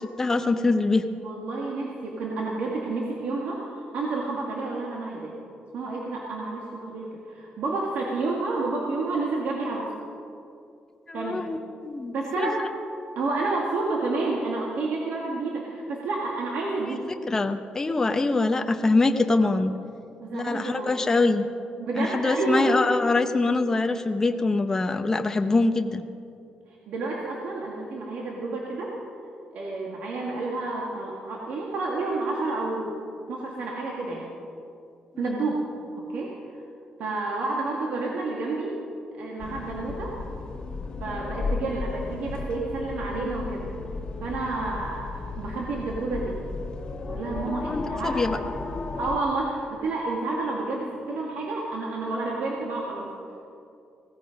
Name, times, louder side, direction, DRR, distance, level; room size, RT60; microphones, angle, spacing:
voice 1, 0.2-1.0 11.1-12.7 17.3-19.7 20.3-21.5 22.0-26.0 35.1-35.3 47.7-48.4, left 3 dB, 20° left, 6 dB, 0.7 m, -24 dB
voice 2, 1.2-5.3 5.7-9.9 11.1-11.4 12.1-12.6 13.2-17.1 20.2-21.0 21.8-22.9 26.9-29.0 29.5-33.0 33.3-34.3 35.2-35.6 36.0-36.4 37.0-38.8 39.2-40.2 41.0-43.7 44.2-46.4 47.0-48.6 49.0-53.4, right 3 dB, 75° right, -2 dB, 2.0 m, -30 dB
sound 1, 39.4-49.2, left 3 dB, 35° left, 1.2 m, -34 dB
17.0 x 15.5 x 5.2 m, 2.5 s
cardioid pair, 155°, 3 cm